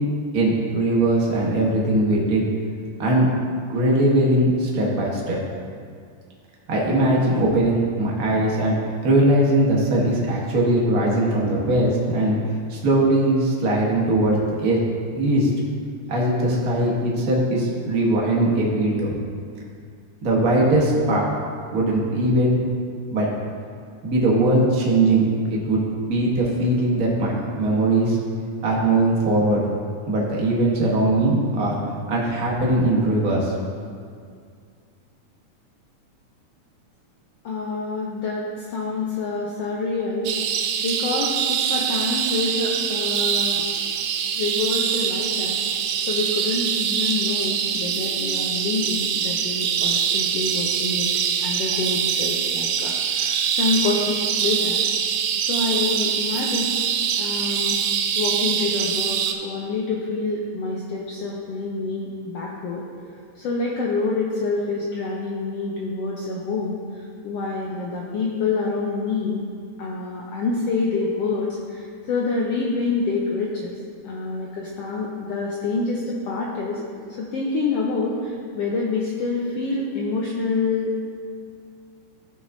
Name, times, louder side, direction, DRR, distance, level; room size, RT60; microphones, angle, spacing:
voice 1, 0.3-2.4 3.0-3.3 3.7-5.4 6.7-8.8 9.0-12.3 12.7-14.8 15.1-15.5 16.1-19.1 20.2-21.3 21.7-22.6 23.1-23.3 24.0-25.2 25.5-25.8 26.1-28.2 28.6-29.6 30.1-31.8 32.1-33.5, right 1 dB, 60° right, -4 dB, 0.9 m, -20 dB
voice 2, 37.4-40.3 40.8-43.6 44.3-45.6 46.1-51.1 51.4-54.8 55.5-56.7 57.2-57.8 58.2-62.8 63.4-66.7 67.2-69.4 69.8-71.8 72.1-73.7 74.0-76.8 77.2-81.0, left 3 dB, 75° left, -3 dB, 1.4 m, -27 dB
sound 1, 40.2-59.3, right 8 dB, 90° right, 1.4 m, -24 dB
15.0 x 6.1 x 2.6 m, 2.2 s
omnidirectional pair, 3.6 m